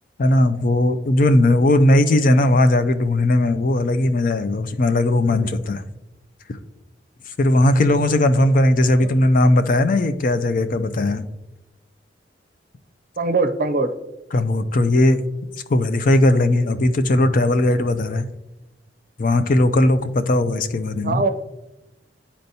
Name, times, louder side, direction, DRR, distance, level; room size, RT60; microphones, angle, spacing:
voice 1, 0.2-5.8 7.4-11.3 14.3-15.2 15.7-18.3 19.2-21.2, left 1 dB, 50° left, 9 dB, 0.5 m, -18 dB
voice 2, 13.2-13.9 21.0-21.3, right 3 dB, 50° right, 9 dB, 0.5 m, -21 dB
10.5 x 4.3 x 2.7 m, 0.97 s
head